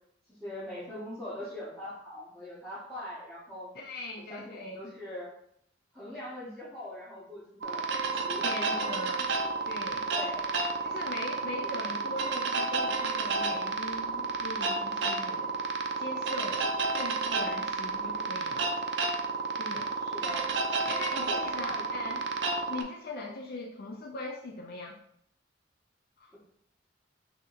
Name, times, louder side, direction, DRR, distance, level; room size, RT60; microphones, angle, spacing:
voice 1, 0.3-3.7 4.3-5.3 5.9-8.9 10.0-10.5 11.6-11.9 20.0-20.5 21.1-21.9 23.2-23.3 26.3-26.4, left 1 dB, 5° left, -14 dB, 1.2 m, -42 dB
voice 2, 3.8-4.9 8.4-9.3 9.6-10.1 10.8-15.6 16.0-16.7 16.9-18.7 19.6-19.9 20.9-22.2 22.7-25.0 26.2-26.3, left 2 dB, 55° left, 1 dB, 0.5 m, -40 dB
sound 1, 7.6-22.8, right 4 dB, 65° right, 0.5 m, -31 dB
5.9 x 2.9 x 2.5 m, 0.69 s
head